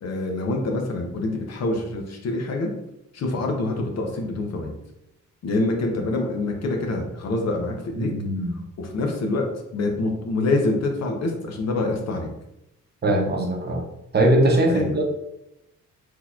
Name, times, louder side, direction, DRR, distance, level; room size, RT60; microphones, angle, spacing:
voice 1, 0.0-2.7 3.1-4.7 5.4-8.1 8.8-9.5 9.7-12.3 14.7-14.9, left 2 dB, 60° left, 2 dB, 0.8 m, -26 dB
voice 2, 8.0-8.5 13.0-13.8 14.1-15.0, right 1 dB, 35° right, 1 dB, 0.8 m, -21 dB
3.8 x 2.9 x 2.4 m, 0.85 s
cardioid pair, 90°, 30 cm